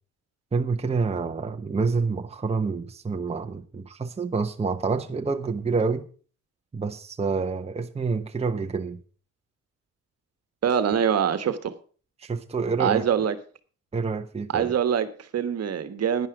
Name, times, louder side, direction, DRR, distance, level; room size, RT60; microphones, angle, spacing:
voice 1, 0.5-6.1 6.7-9.0 12.2-13.1 13.9-14.7, right 4 dB, 20° right, 0.9 m, -27 dB
voice 2, 10.6-11.7 12.8-13.4 14.5-16.3, right 8 dB, 55° right, 1.4 m, -24 dB
10.5 x 10.5 x 4.8 m
cardioid pair, 90°, 30 cm